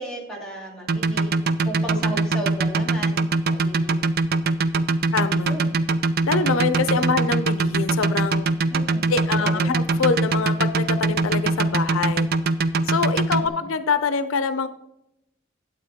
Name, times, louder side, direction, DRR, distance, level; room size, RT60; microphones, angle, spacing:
voice 1, 0.0-1.3 1.6-4.0 5.5-5.8 8.7-9.0 9.4-9.7 13.3-13.6, right 1 dB, 5° left, -5 dB, 3.1 m, -35 dB
sound 1, 0.9-13.5, right 3 dB, 50° right, 0.5 m, -21 dB
voice 2, 5.1-5.6 6.3-8.5 9.1-12.3 12.9-14.7, left 5 dB, 90° left, 11 dB, 0.6 m, -24 dB
11.5 x 8.5 x 3.6 m, 0.84 s
head